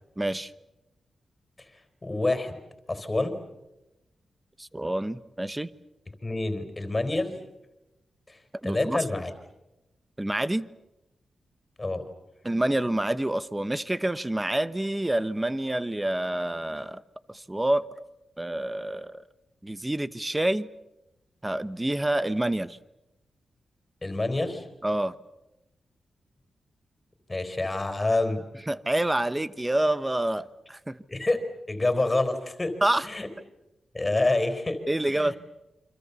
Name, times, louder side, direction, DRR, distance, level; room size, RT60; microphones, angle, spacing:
voice 1, 0.2-0.5 4.6-5.7 8.6-9.2 10.2-10.7 12.4-17.0 17.3-17.9 18.4-19.2 19.6-20.7 21.4-22.8 24.8-25.2 28.7-31.0 32.8-33.1 34.9-35.4, right 1 dB, 10° right, 1.0 m, -27 dB
voice 2, 2.0-2.6 2.9-3.4 6.2-7.4 8.3-9.3 11.8-12.0 24.0-24.7 27.3-28.4 31.1-32.8 33.0-33.3 33.9-34.8 35.1-35.3, left 2 dB, 20° left, 4.1 m, -27 dB
29.0 x 25.5 x 7.1 m
wide cardioid pair, 135°, 0 cm